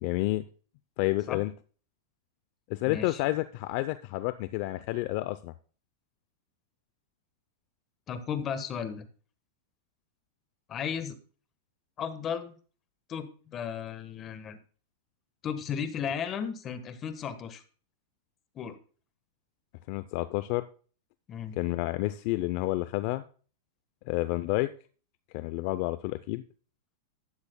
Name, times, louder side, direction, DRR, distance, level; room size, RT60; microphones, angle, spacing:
voice 1, 0.0-0.4 1.0-1.5 2.7-5.5 19.9-20.6 21.6-23.2 24.1-24.7 25.3-26.4, left 18 dB, 50° left, 13 dB, 0.5 m, -30 dB
voice 2, 2.9-3.2 8.1-9.1 10.7-11.2 12.0-12.5 13.1-14.6 15.4-17.6 18.5-18.8 21.3-21.6, left 7 dB, 30° left, 11 dB, 1.2 m, -35 dB
12.0 x 9.7 x 2.2 m, 0.39 s
hypercardioid pair, 130°, 0 cm